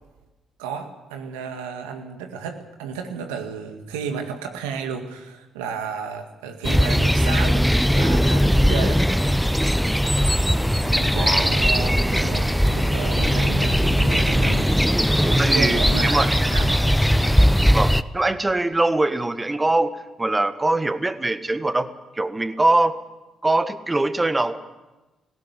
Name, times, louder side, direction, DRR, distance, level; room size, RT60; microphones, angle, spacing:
voice 1, 0.6-9.0 10.9-14.8 15.2-16.8, right 6 dB, 90° right, 5 dB, 2.0 m, -32 dB
sound 1, 6.6-18.0, equal, ahead, 0.8 m, -19 dB
sound 2, 6.7-17.5, right 4 dB, 70° right, 2.4 m, -46 dB
sound 3, 10.1-15.6, right 4 dB, 55° right, 2.5 m, -41 dB
voice 2, 11.1-11.5 15.4-16.4 17.7-19.9 20.2-23.0 23.4-24.6, right 2 dB, 20° right, 12 dB, 1.5 m, -22 dB
19.0 x 17.0 x 8.2 m, 1.1 s
hypercardioid pair, 50°, 0 cm